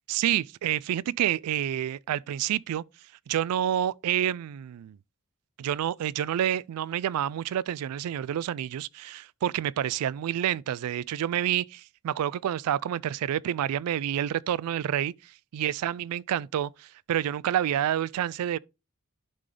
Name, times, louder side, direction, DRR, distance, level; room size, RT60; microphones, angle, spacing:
voice 1, 0.1-2.8 3.3-5.0 5.6-18.6, right 10 dB, 80° right, 0.3 m, -28 dB
11.5 x 3.8 x 3.2 m
head